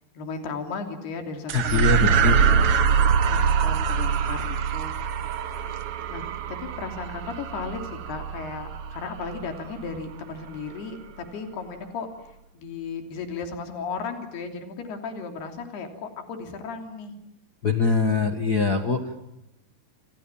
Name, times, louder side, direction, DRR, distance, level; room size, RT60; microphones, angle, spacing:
voice 1, 0.0-2.7 3.3-4.9 6.1-17.1, left 5 dB, 85° left, 5 dB, 5.1 m, -35 dB
voice 2, 1.5-2.6 17.6-19.0, left 4 dB, 45° left, 5 dB, 1.3 m, -23 dB
sound 1, 1.5-10.1, right 6 dB, 75° right, 1.3 m, -24 dB
28.5 x 28.0 x 7.3 m, 0.87 s
omnidirectional pair, 4.5 m